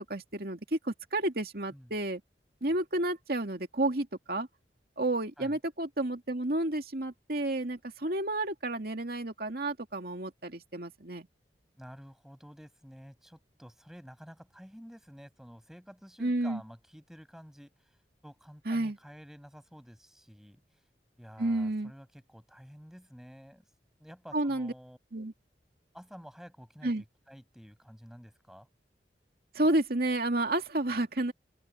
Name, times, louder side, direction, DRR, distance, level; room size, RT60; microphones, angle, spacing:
voice 1, 0.1-2.2 2.6-4.5 5.0-11.3 16.2-16.6 18.7-19.0 21.4-21.9 24.3-24.7 25.1-25.3 26.8-27.0 29.5-31.3, right 1 dB, 60° right, 2.5 m, -31 dB
voice 2, 11.8-18.0 18.2-20.8 21.2-23.6 24.0-25.0 25.9-28.7, equal, ahead, 6.7 m, -51 dB
open air
head